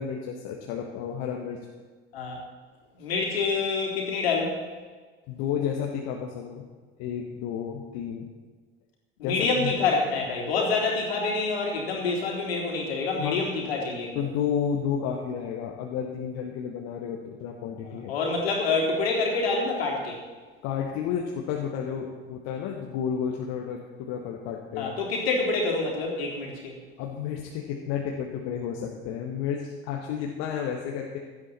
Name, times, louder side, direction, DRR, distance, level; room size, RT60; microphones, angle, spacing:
voice 1, 0.0-1.6 5.3-6.7 7.0-8.3 9.2-9.7 13.2-13.4 14.1-18.1 20.6-25.0 27.0-31.2, left 8 dB, 50° left, 1 dB, 1.5 m, -31 dB
voice 2, 2.9-4.6 9.2-14.3 17.8-20.2 24.8-26.8, left 3 dB, 65° left, -1 dB, 3.5 m, -27 dB
16.5 x 12.0 x 4.3 m, 1.4 s
figure-of-eight pair, 65°, 32 cm